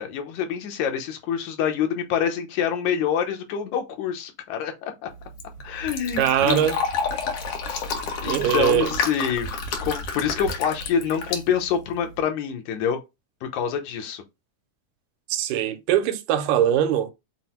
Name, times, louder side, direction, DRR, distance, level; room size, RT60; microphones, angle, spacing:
voice 1, 0.0-5.1 5.6-6.7 8.2-9.5 9.8-13.0 13.4-14.2, left 8 dB, 80° left, 2.2 m, -26 dB
Fill (with liquid), 5.1-12.2, left 4 dB, 65° left, 1.7 m, -30 dB
voice 2, 6.2-6.8 8.2-8.9 15.3-17.1, right 10 dB, 90° right, 2.0 m, -21 dB
6.0 x 2.0 x 4.3 m
omnidirectional pair, 3.3 m